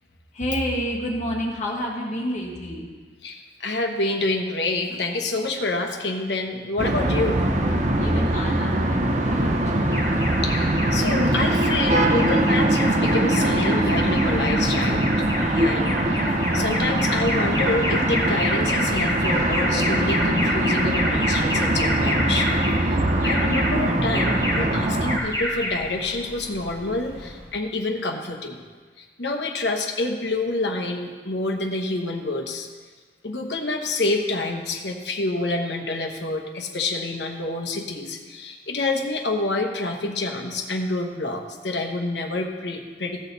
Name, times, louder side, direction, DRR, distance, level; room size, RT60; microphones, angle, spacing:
voice 1, 0.3-2.9 8.0-9.8, equal, 40° left, -2 dB, 1.9 m, -29 dB
voice 2, 3.2-7.4 10.4-15.0 15.5-16.2 16.5-22.5 22.9-23.0 23.2-28.6 29.2-32.7 33.2-43.2, left 2 dB, 70° left, 3 dB, 1.2 m, -27 dB
sound 1, 6.8-25.2, right 1 dB, 40° right, 0.7 m, -22 dB
Alarm, 9.9-27.5, left 1 dB, 20° left, 3.0 m, -29 dB
16.0 x 6.4 x 4.1 m, 1.5 s
head